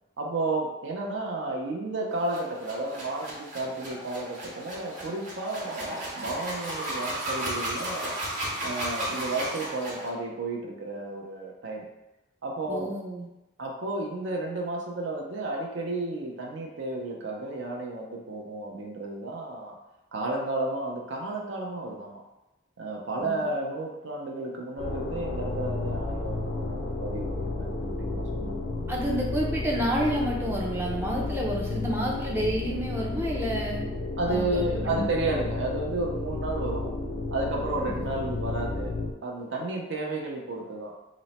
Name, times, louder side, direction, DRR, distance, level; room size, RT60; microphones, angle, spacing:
voice 1, 0.2-8.2 8.6-11.9 12.4-12.9 13.6-19.8 20.1-22.2 22.8-28.6 29.1-29.2 32.8-32.9 34.2-36.9 37.3-38.9 39.2-40.9, right 2 dB, 65° right, 0 dB, 0.5 m, -32 dB
sound 1, 2.2-10.1, right 1 dB, 40° right, 0.8 m, -34 dB
voice 2, 12.7-13.2 23.2-23.5 28.9-33.8 34.3-35.1 37.8-38.1, equal, 10° right, -3 dB, 0.4 m, -30 dB
sound 2, 24.8-39.1, left 2 dB, 65° left, 0.5 m, -32 dB
2.9 x 2.1 x 4.0 m, 0.98 s
head